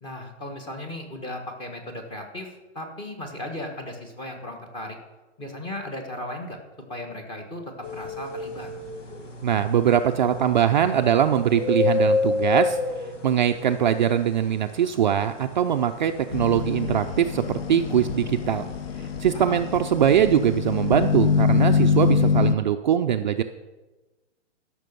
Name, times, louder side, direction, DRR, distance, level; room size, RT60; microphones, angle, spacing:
voice 1, 0.0-5.0 5.4-6.6 6.9-7.6 7.9-8.7 19.3-19.6, left 1 dB, 15° left, 4 dB, 1.3 m, -36 dB
sound 1, 7.8-22.1, left 3 dB, 85° left, 2.2 m, -30 dB
voice 2, 9.4-12.8 13.2-18.6 19.2-23.4, right 9 dB, 40° right, 6 dB, 0.5 m, -22 dB
sound 2, 16.3-22.6, left 6 dB, 55° left, 0.7 m, -24 dB
13.0 x 6.0 x 6.8 m, 1.1 s
hypercardioid pair, 160°, 36 cm